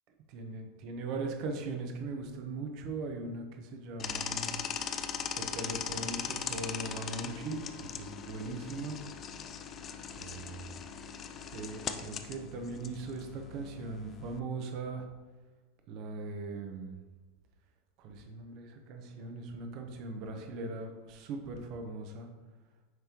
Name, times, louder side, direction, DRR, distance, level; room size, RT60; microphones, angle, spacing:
voice 1, 0.3-4.6 5.3-9.0 10.1-10.8 11.5-15.1 15.9-17.0 18.0-22.3, right 3 dB, 50° right, 4 dB, 0.9 m, -39 dB
sound 1, 4.0-14.4, left 7 dB, 35° left, 0.5 m, -40 dB
9.3 x 3.5 x 3.0 m, 1.2 s
hypercardioid pair, 100°, 0 cm